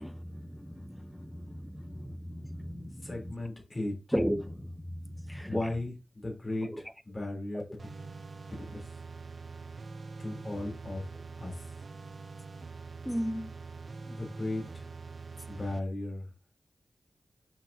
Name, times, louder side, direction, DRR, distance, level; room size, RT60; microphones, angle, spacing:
voice 1, 0.0-3.3 4.1-5.6 6.6-6.8 7.5-7.6 13.0-13.5, equal, ahead, 0.7 m, -36 dB
voice 2, 3.0-3.9 5.5-7.6 8.7-8.8 10.2-11.0 11.3-11.5 14.0-14.9 15.5-16.2, left 2 dB, 25° left, 3.4 m, -36 dB
sound 1, 7.8-15.8, right 4 dB, 55° right, 0.6 m, -44 dB
7.1 x 6.1 x 2.8 m
wide cardioid pair, 70°, 0 cm